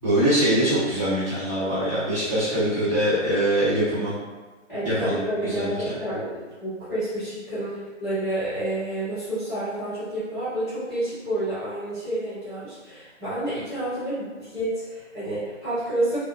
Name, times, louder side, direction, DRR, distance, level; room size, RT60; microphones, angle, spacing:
voice 1, 0.0-4.1 4.8-5.7, right 1 dB, 25° right, -16 dB, 0.8 m, -23 dB
voice 2, 4.7-6.3 6.6-16.2, right 1 dB, ahead, -20 dB, 1.0 m, -29 dB
2.9 x 2.0 x 2.4 m, 1.3 s
hypercardioid pair, 170°, 38 cm